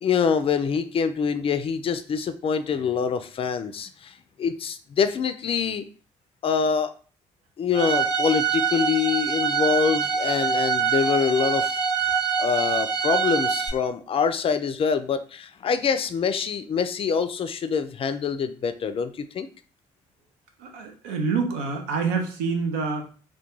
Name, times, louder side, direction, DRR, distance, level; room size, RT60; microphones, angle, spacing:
voice 1, 0.0-5.9 6.4-6.9 7.6-11.8 12.4-19.5, left 6 dB, 40° left, 10 dB, 0.3 m, -25 dB
Bowed string instrument, 7.7-13.7, right 6 dB, 35° right, 0.9 m, -24 dB
voice 2, 20.6-23.1, right 5 dB, 80° right, 5 dB, 0.5 m, -27 dB
2.2 x 2.2 x 3.0 m, 0.39 s
hypercardioid pair, 45°, 15 cm